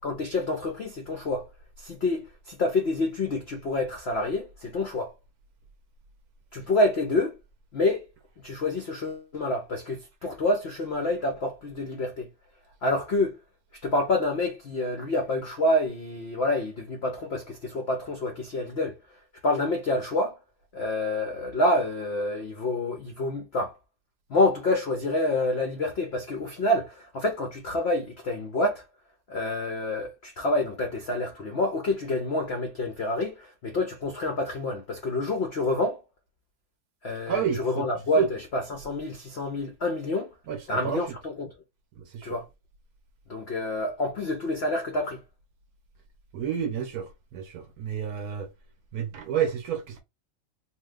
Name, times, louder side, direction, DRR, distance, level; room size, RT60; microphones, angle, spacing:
voice 1, 0.0-1.5 1.8-5.1 6.5-7.4 7.7-8.1 8.4-12.3 12.8-13.4 13.8-19.0 19.4-20.4 20.7-23.8 24.3-28.8 29.3-36.0 37.0-40.3 40.7-41.5 42.2-42.5 43.3-45.2, left 2 dB, 75° left, 0.5 m, -27 dB
voice 2, 37.3-37.9 38.2-38.3 40.5-41.0 42.0-42.4 46.3-48.5 48.9-50.0, right 8 dB, 70° right, 1.0 m, -30 dB
3.1 x 2.1 x 3.2 m
omnidirectional pair, 2.0 m